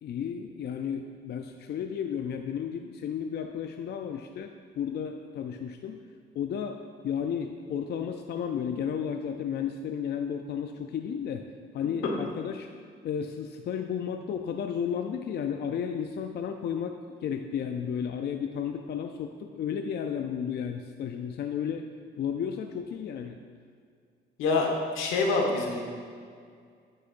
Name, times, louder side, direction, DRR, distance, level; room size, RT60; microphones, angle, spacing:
voice 1, 0.0-6.0 6.4-6.8 7.0-11.4 11.7-12.7 13.0-21.9 22.2-23.4, left 8 dB, 55° left, 5 dB, 0.4 m, -33 dB
voice 2, 24.4-24.7 24.9-25.8, left 3 dB, 90° left, 0 dB, 1.2 m, -25 dB
9.5 x 6.5 x 2.5 m, 2.2 s
cardioid pair, 90°, 20 cm